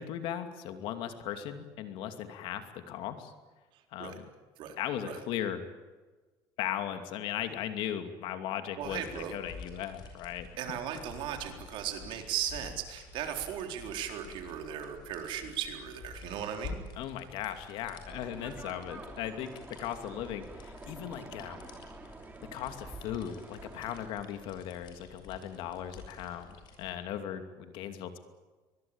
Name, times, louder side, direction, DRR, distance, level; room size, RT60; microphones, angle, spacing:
voice 1, 0.0-3.3 3.9-4.3 4.8-5.6 6.6-10.8 17.0-19.5 19.8-21.7 22.5-28.2, left 10 dB, 75° left, 8 dB, 2.6 m, -38 dB
sound 1, 8.8-26.9, left 4 dB, 55° left, 7.1 m, -50 dB
voice 2, 8.8-9.3 10.6-16.8, right 9 dB, 70° right, 4 dB, 4.0 m, -37 dB
sound 2, 18.1-24.1, right 3 dB, 20° right, 2.9 m, -48 dB
23.5 x 21.5 x 8.9 m, 1.3 s
cardioid pair, 115°, 9 cm